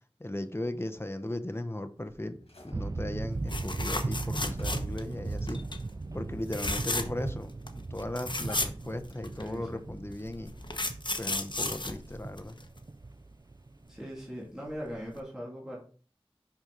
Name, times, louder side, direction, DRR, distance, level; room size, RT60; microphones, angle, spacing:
voice 1, 0.2-5.6 6.1-10.5 11.2-12.6, left 1 dB, 25° left, 8 dB, 0.7 m, -37 dB
sound 1, 2.0-6.2 6.6-7.0 7.3-7.7 8.0-9.3, left 1 dB, 80° left, 1.6 m, -48 dB
sound 2, 2.7-14.2, right 3 dB, 40° right, 0.3 m, -38 dB
sound 3, 3.5-5.1 5.5-5.8 6.4-7.3 7.7-7.8 8.0-9.5 10.3-12.8 14.7-14.9 15.2-15.3, left 2 dB, 50° left, 0.9 m, -34 dB
voice 2, 9.4-9.8 13.9-15.8, equal, 5° right, -5 dB, 2.3 m, -40 dB
5.9 x 5.8 x 3.8 m, 0.41 s
wide cardioid pair, 40°, 10 cm